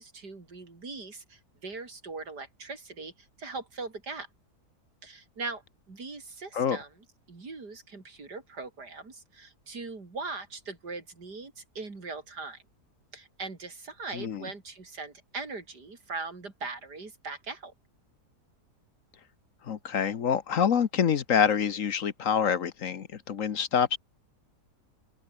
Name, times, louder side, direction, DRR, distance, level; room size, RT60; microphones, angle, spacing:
voice 1, 0.0-3.1 3.4-4.3 5.0-5.6 5.9-6.9 7.3-12.6 13.1-17.7, right 3 dB, 85° right, 4.4 m, -40 dB
voice 2, 14.1-14.5 19.7-24.0, left 7 dB, 55° left, 1.4 m, -26 dB
open air
omnidirectional pair, 1.7 m